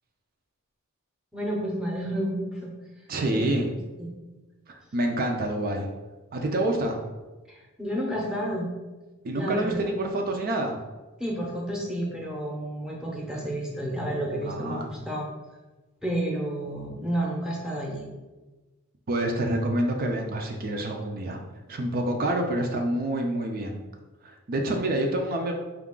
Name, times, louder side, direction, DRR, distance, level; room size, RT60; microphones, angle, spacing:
voice 1, 1.3-2.7 3.3-3.6 4.0-4.1 7.5-8.7 9.3-9.9 11.2-15.3 16.0-18.1, right 1 dB, 5° right, -2 dB, 0.7 m, -31 dB
voice 2, 3.1-3.6 4.7-5.9 6.3-7.0 9.2-10.7 14.4-14.9 19.1-21.4 21.7-23.8 24.2-25.5, right 1 dB, 45° right, 2 dB, 0.4 m, -27 dB
4.7 x 2.4 x 3.7 m, 1.2 s
head